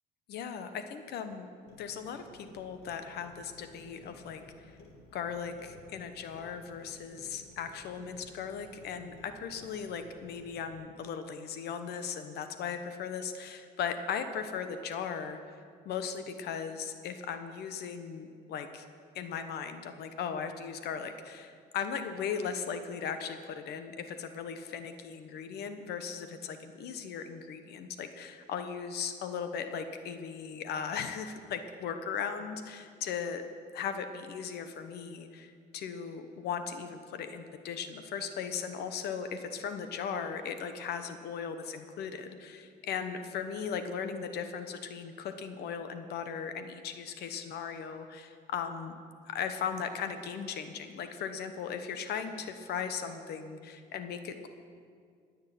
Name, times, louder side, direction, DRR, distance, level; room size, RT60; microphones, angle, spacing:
voice 1, 0.3-1.5 1.8-4.7 5.1-15.6 15.8-18.8 19.1-33.4 33.7-49.0 49.3-54.5, left 7 dB, 75° left, 8 dB, 1.1 m, -38 dB
Clock, 1.7-10.8, left 2 dB, 90° left, 2.3 m, -55 dB
18.0 x 6.6 x 9.3 m, 2.2 s
cardioid pair, 110°, 17 cm